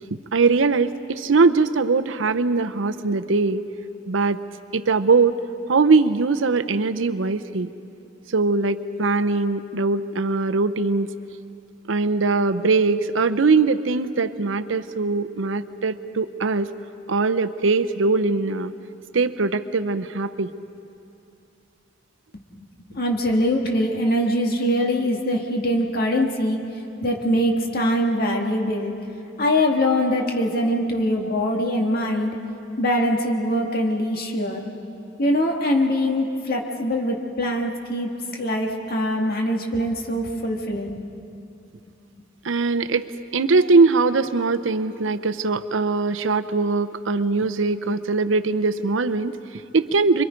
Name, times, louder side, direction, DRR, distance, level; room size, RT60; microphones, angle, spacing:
voice 1, 0.1-3.6 4.1-4.4 4.7-5.4 5.7-7.7 8.3-11.1 11.9-16.7 17.1-18.7 19.1-20.5 42.4-43.1 43.3-50.2, right 4 dB, 85° right, 10 dB, 0.7 m, -21 dB
voice 2, 22.9-26.6 27.0-28.9 29.4-32.3 32.8-34.6 35.2-41.0, equal, 55° left, 1 dB, 1.9 m, -23 dB
27.0 x 24.0 x 5.2 m, 2.7 s
head